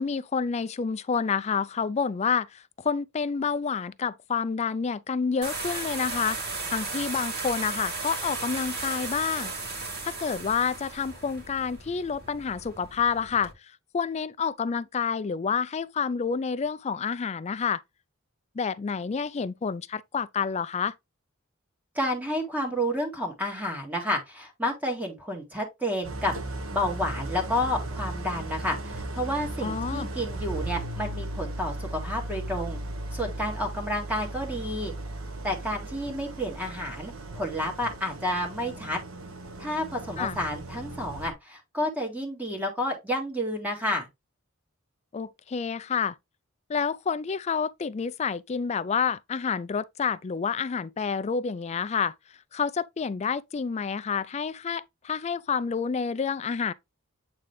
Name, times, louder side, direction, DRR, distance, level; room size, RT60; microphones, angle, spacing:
voice 1, 0.0-6.4 6.7-9.5 10.0-13.5 13.9-17.8 18.6-20.9 29.6-30.1 40.2-40.4 45.1-46.1 46.7-52.1 52.5-56.7, left 6 dB, 30° left, 0.3 m, -29 dB
sound 1, 5.4-13.5, right 3 dB, 50° right, 2.2 m, -35 dB
voice 2, 22.0-26.3 26.7-32.8 33.1-34.9 35.4-39.0 39.6-44.1, left 1 dB, 10° right, 1.8 m, -30 dB
Idling, 26.0-41.3, right 2 dB, 85° right, 1.1 m, -36 dB
8.3 x 3.7 x 3.2 m
head